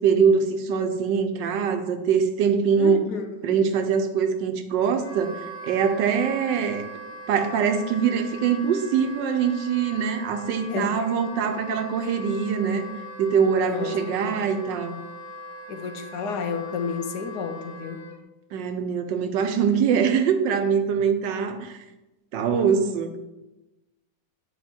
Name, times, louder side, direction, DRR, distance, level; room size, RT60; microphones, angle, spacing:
voice 1, 0.0-3.0 3.4-6.8 7.3-12.8 13.2-14.9 18.5-21.8 22.3-23.1, right 6 dB, 85° right, 7 dB, 1.4 m, -23 dB
voice 2, 2.7-3.6 10.7-11.0 13.6-14.5 15.7-18.1 19.7-19.8, left 5 dB, 70° left, 7 dB, 1.3 m, -31 dB
Wind instrument woodwind instrument, 5.0-18.2, equal, 45° left, 1.5 m, -40 dB
9.4 x 4.4 x 4.4 m, 1.0 s
omnidirectional pair, 1.9 m